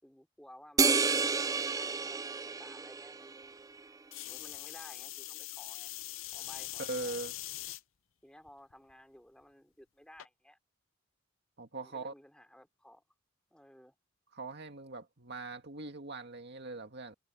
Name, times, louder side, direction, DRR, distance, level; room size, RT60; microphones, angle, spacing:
voice 1, 0.0-3.3 4.3-5.9 6.3-7.2 8.2-10.6 11.8-13.0 13.5-13.9, left 1 dB, 5° left, 4.7 m, -56 dB
sound 1, 0.8-3.5, right 5 dB, 15° right, 0.4 m, -30 dB
sound 2, 4.1-7.8 8.5-8.9 10.2-10.3, left 16 dB, 75° left, 0.6 m, -42 dB
voice 2, 6.8-7.4 11.6-12.1 14.3-17.1, right 3 dB, 55° right, 2.1 m, -41 dB
head